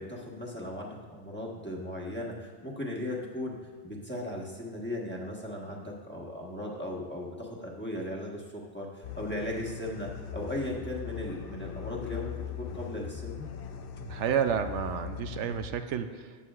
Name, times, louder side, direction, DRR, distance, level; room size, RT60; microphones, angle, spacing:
voice 1, 0.0-3.6 3.8-12.3 12.6-13.5, left 1 dB, 10° left, -4 dB, 1.3 m, -37 dB
sound 1, 9.0-15.7, left 8 dB, 60° left, 0.7 m, -40 dB
voice 2, 14.0-16.5, right 8 dB, 80° right, 8 dB, 0.9 m, -31 dB
14.5 x 9.2 x 2.4 m, 1.5 s
omnidirectional pair, 1.2 m